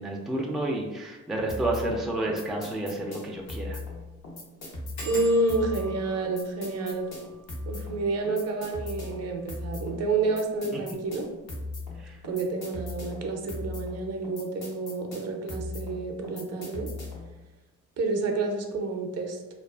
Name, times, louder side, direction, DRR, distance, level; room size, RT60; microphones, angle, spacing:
voice 1, 0.0-3.8 12.0-12.2, right 1 dB, ahead, 0 dB, 0.3 m, -30 dB
sound 1, 1.5-17.3, left 2 dB, 65° left, 0.8 m, -39 dB
sound 2, 1.9-2.0 2.4-2.5 2.7-2.8 3.4-3.6 3.9-4.0 5.0-10.2 10.9-11.4 11.7-12.1 12.3-12.4, right 2 dB, 80° left, 1.1 m, -46 dB
voice 2, 5.0-7.1 7.7-11.3 12.2-16.9 18.0-19.4, right 3 dB, 60° right, 3 dB, 0.5 m, -29 dB
2.4 x 2.3 x 2.3 m, 1.1 s
cardioid pair, 90°, 30 cm